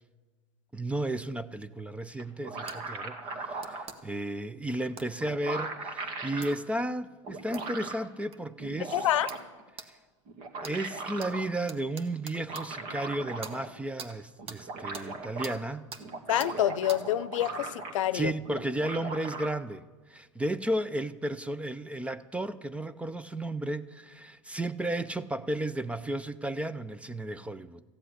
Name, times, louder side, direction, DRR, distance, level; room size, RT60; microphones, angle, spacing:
voice 1, 0.7-9.0 9.9-10.0 10.6-15.8 18.1-27.8, right 1 dB, 5° right, 0.5 m, -33 dB
sound 1, 2.2-3.9 4.9-5.0 5.2-6.6 7.2-8.1 8.6-9.6 10.3-11.5 12.3-13.8 14.1-14.2 14.4-15.5 16.0-18.1 18.5-19.5, right 3 dB, 50° right, 2.1 m, -38 dB
sound 2, 2.7-2.8 3.6-4.0 5.0-5.1 6.4-6.5 7.5-7.7 8.3-8.4 9.3-9.4 9.8-9.9 10.6-10.8 11.2-11.3 11.7-12.7 13.4-13.6 14.0-14.1 14.5-14.6 14.9-15.1 15.4-15.6 15.9-16.0 16.4-16.5 16.9-17.0, right 5 dB, 35° right, 1.4 m, -43 dB
voice 2, 8.9-9.3 16.3-18.3, left 12 dB, 75° left, 0.7 m, -27 dB
15.0 x 7.8 x 9.7 m
hypercardioid pair, 105°, 16 cm